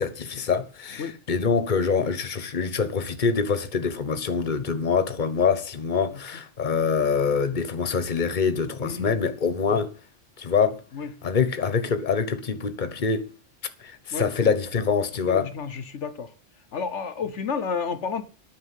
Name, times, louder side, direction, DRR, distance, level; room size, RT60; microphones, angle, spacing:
voice 1, 0.0-9.9 10.4-10.8 11.2-13.3 13.8-15.5, left 5 dB, 40° left, 1.3 m, -25 dB
voice 2, 8.8-9.1 9.7-9.8 10.9-11.1 14.1-14.5 15.3-16.3 16.7-18.2, left 5 dB, 75° left, 1.3 m, -31 dB
9.6 x 6.7 x 8.3 m
omnidirectional pair, 1.2 m